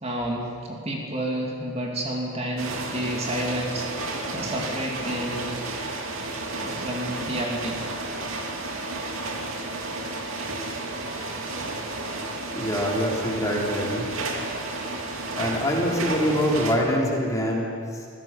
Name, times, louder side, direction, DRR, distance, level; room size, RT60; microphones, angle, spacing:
voice 1, 0.0-5.6 6.6-7.8 8.4-8.5, right 1 dB, 30° right, -1 dB, 3.0 m, -30 dB
sound 1, 2.6-16.7, right 2 dB, 70° right, 2.7 m, -32 dB
voice 2, 12.5-14.1 15.4-18.1, equal, 15° left, -2 dB, 3.3 m, -25 dB
26.0 x 16.5 x 7.4 m, 2.3 s
head